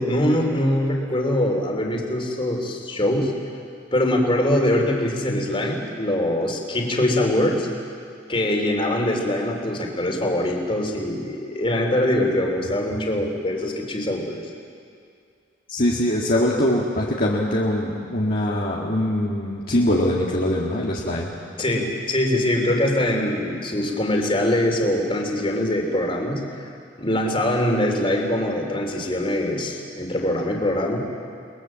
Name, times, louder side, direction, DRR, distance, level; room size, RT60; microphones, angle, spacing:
voice 1, 0.0-3.3 3.9-7.7 8.3-14.4 21.6-26.7 27.0-31.0, left 1 dB, 25° left, 1 dB, 3.5 m, -23 dB
voice 2, 15.7-21.3, left 1 dB, 45° left, -4 dB, 2.1 m, -22 dB
29.5 x 21.0 x 7.6 m, 2.3 s
head